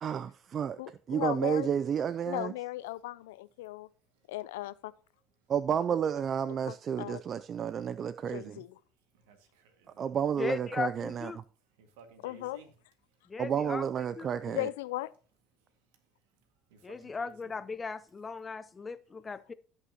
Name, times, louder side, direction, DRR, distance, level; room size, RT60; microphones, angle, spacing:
voice 1, 0.0-0.8 1.1-2.5 5.5-8.6 10.0-11.4 13.4-14.7, right 8 dB, 45° right, 0.4 m, -31 dB
voice 2, 0.8-1.7 2.3-3.9 4.3-4.9 6.5-7.2 8.3-8.7 12.2-12.6 14.5-15.1, left 17 dB, 85° left, 0.4 m, -37 dB
voice 3, 9.1-10.0 11.8-12.7 16.7-17.5, right 4 dB, 80° right, 1.8 m, -57 dB
voice 4, 10.4-11.4 13.3-13.8 14.2-14.3 16.8-19.5, left 4 dB, 30° left, 0.6 m, -37 dB
17.0 x 5.7 x 2.9 m
hypercardioid pair, 70°, 0 cm